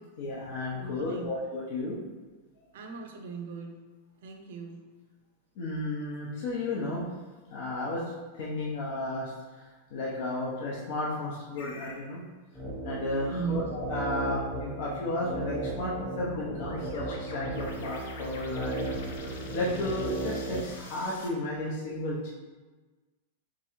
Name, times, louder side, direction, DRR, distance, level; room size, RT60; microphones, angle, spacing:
voice 1, 0.2-2.0 5.6-7.0 7.5-8.0 8.3-9.3 9.9-12.2 12.8-18.9 19.2-22.3, left 2 dB, 50° left, -5 dB, 0.8 m, -33 dB
voice 2, 0.7-1.3 2.7-3.8 4.2-4.8 13.3-13.7 17.6-17.7, right 5 dB, 65° right, 4 dB, 0.7 m, -37 dB
sound 1, 11.6-12.0 15.7-21.3, left 3 dB, 80° left, 0.8 m, -46 dB
sound 2, 12.5-20.7, right 1 dB, ahead, 1.0 m, -36 dB
3.7 x 3.0 x 4.4 m, 1.3 s
supercardioid pair, 175°, 0 cm